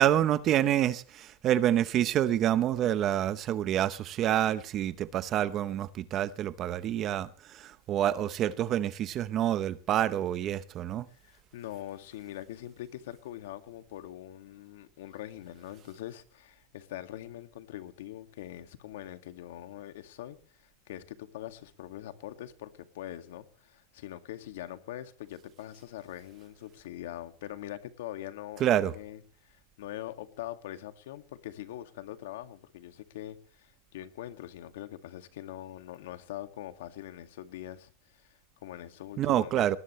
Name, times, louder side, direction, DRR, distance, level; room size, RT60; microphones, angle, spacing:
voice 1, 0.0-11.1 28.6-28.9 39.2-39.8, right 11 dB, 25° right, 0.8 m, -27 dB
voice 2, 11.1-39.8, left 13 dB, 75° left, 2.1 m, -43 dB
20.5 x 20.0 x 3.2 m
supercardioid pair, 175°, 0 cm